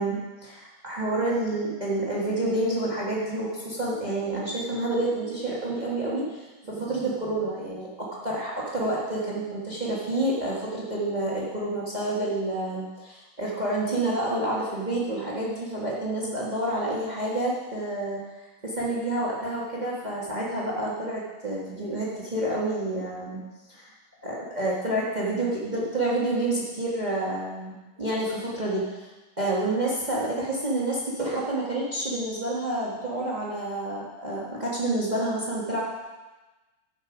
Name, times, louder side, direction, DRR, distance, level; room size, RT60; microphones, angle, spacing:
voice 1, 0.0-23.4 23.7-23.9 24.2-29.1 29.4-35.8, right 1 dB, 55° right, -5 dB, 0.4 m, -29 dB
10.5 x 6.8 x 5.3 m, 1.2 s
omnidirectional pair, 3.6 m